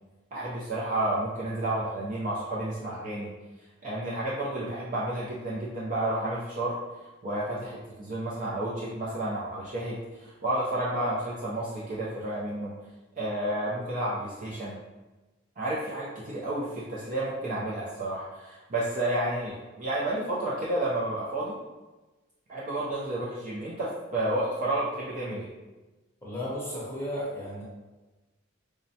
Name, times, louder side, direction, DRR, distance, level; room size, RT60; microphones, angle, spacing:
voice 1, 0.3-3.3 3.8-6.7 7.2-12.7 13.2-14.7 15.6-21.6 22.5-25.5, right 1 dB, 40° right, -6 dB, 0.5 m, -31 dB
voice 2, 26.2-27.6, equal, 10° left, -7 dB, 0.8 m, -34 dB
4.8 x 2.1 x 2.7 m, 1.2 s
head